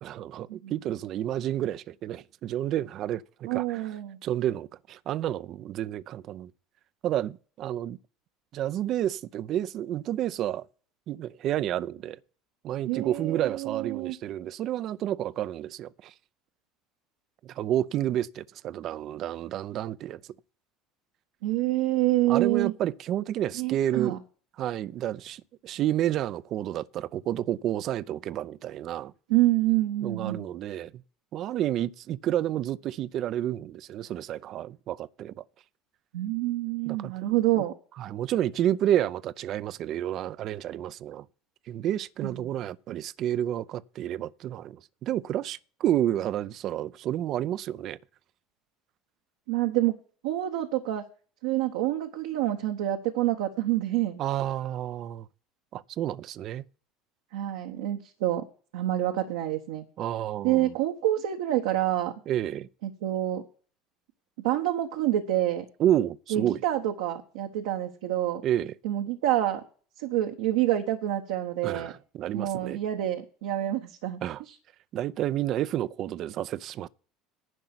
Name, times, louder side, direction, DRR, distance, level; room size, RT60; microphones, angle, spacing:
voice 1, 0.0-3.9 4.2-6.5 7.0-8.0 8.5-10.7 11.1-12.2 12.6-16.1 17.4-20.2 22.3-24.2 24.6-29.1 30.0-30.9 31.3-35.4 36.9-37.1 37.5-37.6 38.0-41.2 41.7-48.0 54.2-55.3 55.7-56.7 60.0-60.7 62.3-62.7 65.8-66.6 68.4-68.7 71.6-72.8 74.2-74.4 74.9-76.9, right 11 dB, 50° right, 0.6 m, -30 dB
voice 2, 3.4-4.2 12.9-14.1 21.4-22.7 23.6-24.2 29.3-30.5 36.1-37.7 42.2-42.6 49.5-49.9 50.2-51.0 51.4-54.2 57.3-58.4 58.7-59.8 60.4-62.1 62.8-63.4 64.4-65.6 66.3-68.4 68.8-69.6 70.0-71.9 72.3-74.2, right 14 dB, 75° right, 1.1 m, -27 dB
11.0 x 5.5 x 8.0 m
hypercardioid pair, 70°, 0 cm